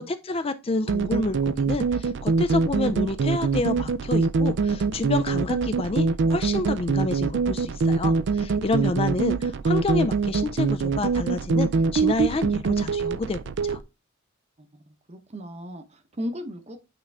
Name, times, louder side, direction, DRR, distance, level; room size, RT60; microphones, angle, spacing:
voice 1, 0.0-13.8, left 3 dB, 25° left, 0.4 m, -29 dB
sound 1, 0.9-13.8, right 4 dB, 55° right, 0.4 m, -24 dB
voice 2, 14.6-16.8, equal, 30° right, 0.9 m, -36 dB
8.7 x 3.7 x 3.4 m
head